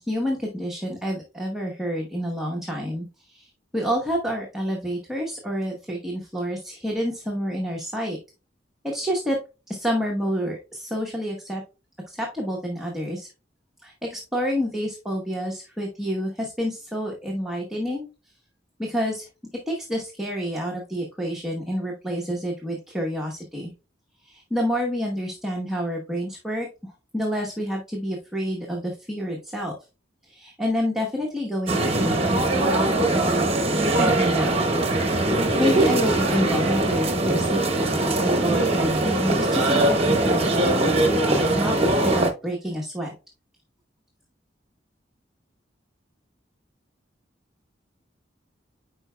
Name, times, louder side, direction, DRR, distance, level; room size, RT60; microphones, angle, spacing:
voice 1, 0.1-8.2 8.8-9.4 9.7-11.6 12.1-13.3 13.8-18.0 18.8-19.3 19.7-23.7 24.2-26.7 27.1-29.7 30.3-33.5 33.7-34.7 35.6-37.8 38.2-41.0 41.3-41.8 42.0-43.1, equal, ahead, -2 dB, 1.0 m, -28 dB
sound 1, 31.7-42.3, right 2 dB, 35° right, 0.9 m, -22 dB
9.7 x 4.5 x 2.2 m, 0.31 s
head